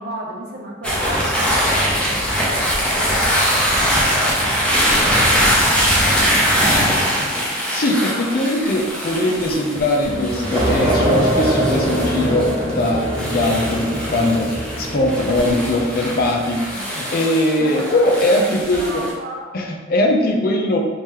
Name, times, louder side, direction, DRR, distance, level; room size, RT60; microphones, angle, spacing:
voice 1, 0.0-2.4 2.9-6.9 7.7-7.8 15.2-15.5 17.6-19.5, right 1 dB, 55° right, -1 dB, 0.7 m, -35 dB
sound 1, 0.8-19.1, equal, 5° left, 0.6 m, -21 dB
voice 2, 7.7-19.1 19.5-20.8, left 1 dB, 50° left, 1 dB, 0.5 m, -20 dB
sound 2, 10.1-16.4, right 1 dB, 25° right, 1.0 m, -23 dB
3.0 x 2.9 x 3.6 m, 1.5 s
head